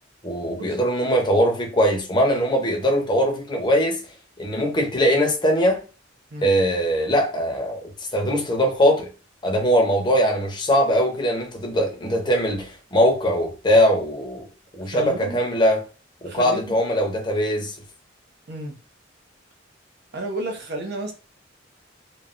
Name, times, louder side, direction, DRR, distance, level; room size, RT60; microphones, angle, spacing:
voice 1, 0.2-4.0 4.4-5.8 6.4-9.1 9.4-14.5 14.7-15.8 16.2-17.7, equal, 25° left, 0.7 m, -21 dB
voice 2, 14.9-15.4 16.2-16.8 18.5-18.8 20.1-21.1, right 1 dB, 60° right, 0.7 m, -31 dB
3.2 x 2.2 x 2.4 m
head